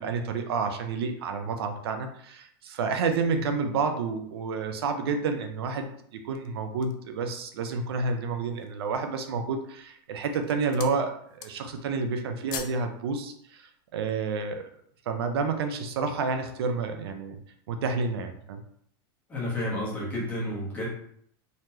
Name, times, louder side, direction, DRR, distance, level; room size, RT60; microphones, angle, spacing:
voice 1, 0.0-14.6 15.1-17.4 17.7-18.6, right 4 dB, 70° right, 6 dB, 0.6 m, -30 dB
sound 1, 6.1-7.1 7.7-7.8 8.3-8.8 9.5-9.9 10.2-11.0 11.3-11.8 12.1-12.9 13.2-13.3, left 9 dB, 45° left, 0.4 m, -41 dB
voice 2, 19.3-20.9, left 1 dB, 10° left, -7 dB, 1.1 m, -31 dB
4.0 x 3.1 x 2.8 m, 0.66 s
supercardioid pair, 180°, 13 cm